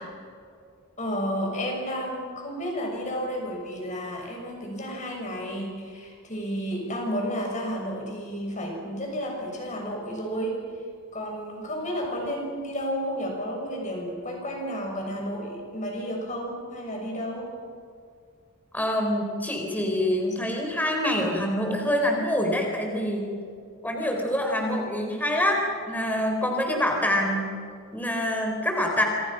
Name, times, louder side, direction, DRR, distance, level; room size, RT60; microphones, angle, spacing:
voice 1, 1.0-10.6 11.1-17.5, equal, 35° left, 1 dB, 6.5 m, -32 dB
voice 2, 18.7-23.3 23.8-27.5 27.9-29.0, left 1 dB, 10° left, 1 dB, 4.1 m, -26 dB
27.5 x 26.0 x 5.9 m, 2.2 s
head